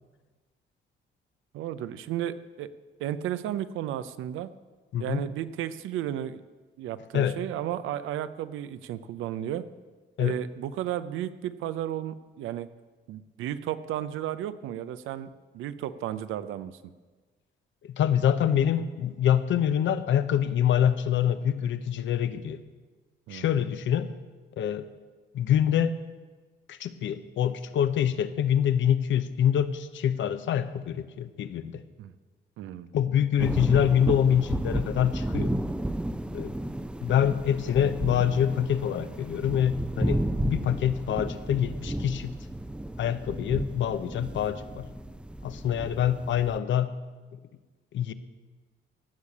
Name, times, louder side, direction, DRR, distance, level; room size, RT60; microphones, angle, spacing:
voice 1, 1.5-2.7 3.0-4.5 5.0-6.4 6.8-9.6 10.2-12.7 13.1-15.3 15.5-16.8 23.3-23.5 32.0-32.1 32.6-32.9, right 11 dB, 90° right, 13 dB, 0.7 m, -33 dB
voice 2, 17.8-22.6 23.3-24.1 24.6-24.9 25.3-25.9 26.7-31.8 32.9-35.5 36.3-36.5 37.0-42.4 43.0-44.9 45.4-47.0 47.9-48.1, left 9 dB, 70° left, 12 dB, 0.8 m, -25 dB
sound 1, 33.4-46.6, right 1 dB, 5° right, 0.5 m, -33 dB
17.0 x 6.7 x 7.3 m, 1.4 s
cardioid pair, 90°, 20 cm